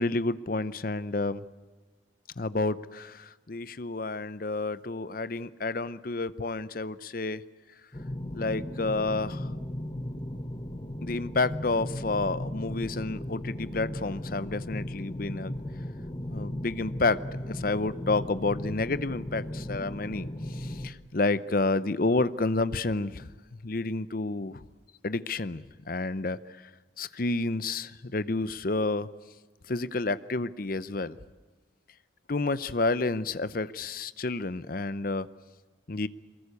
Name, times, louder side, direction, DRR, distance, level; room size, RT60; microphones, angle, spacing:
voice 1, 0.0-1.4 2.4-7.4 8.3-9.5 11.0-15.5 16.3-17.2 17.5-23.3 23.6-24.6 25.0-26.4 27.0-29.1 29.7-31.2 32.3-35.3 35.9-36.1, left 3 dB, 50° left, 15 dB, 0.7 m, -30 dB
sound 1, 7.9-20.9, left 1 dB, 25° left, 1.1 m, -36 dB
23.5 x 21.5 x 8.4 m, 1.3 s
head